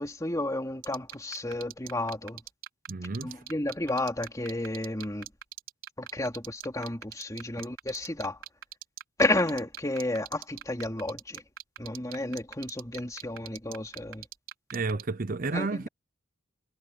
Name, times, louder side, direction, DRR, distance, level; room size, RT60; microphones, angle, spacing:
voice 1, 0.0-2.4 3.2-5.3 6.0-8.4 9.2-11.4 11.8-14.3 15.5-15.9, left 1 dB, 15° left, 2.7 m, -32 dB
sound 1, 0.8-15.0, right 10 dB, 80° right, 3.9 m, -40 dB
voice 2, 2.9-3.4 14.7-15.9, right 3 dB, 45° right, 0.7 m, -31 dB
head